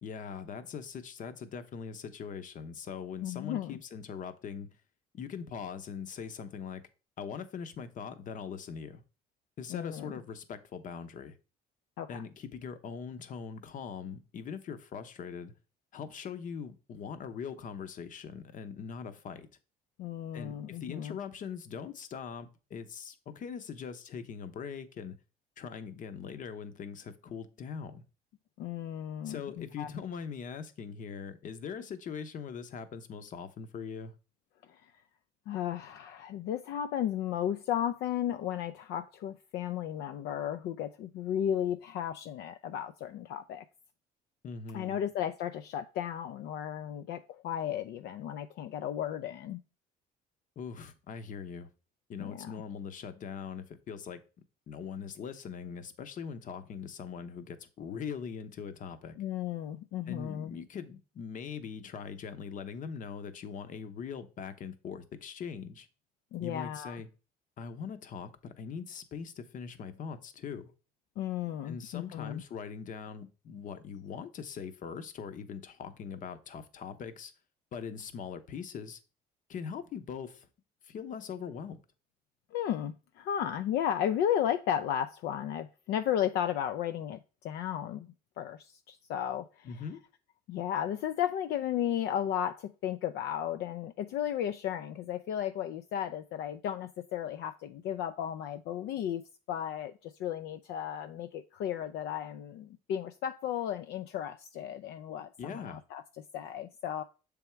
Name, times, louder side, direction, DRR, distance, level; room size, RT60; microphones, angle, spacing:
voice 1, 0.0-4.7 5.1-6.8 7.2-9.0 9.6-11.4 12.1-15.5 15.9-19.5 20.3-25.2 25.6-28.0 29.2-34.1 44.4-45.0 50.6-51.7 52.1-54.2 54.7-59.2 60.1-65.9 66.4-67.1 67.6-70.7 71.6-77.3 77.7-79.0 79.5-80.5 80.8-81.8 89.6-90.0 105.4-105.8, left 6 dB, 50° left, 0.8 m, -41 dB
voice 2, 3.2-3.8 9.7-10.1 12.0-12.2 20.0-21.2 28.6-29.9 34.7-34.8 35.5-43.6 44.7-49.6 52.2-52.5 59.2-60.5 66.3-67.0 71.2-72.4 82.5-88.1 88.4-89.7 90.5-106.0 106.3-107.0, left 10 dB, 75° left, 0.4 m, -34 dB
6.9 x 3.5 x 4.4 m
cardioid pair, 110°, 17 cm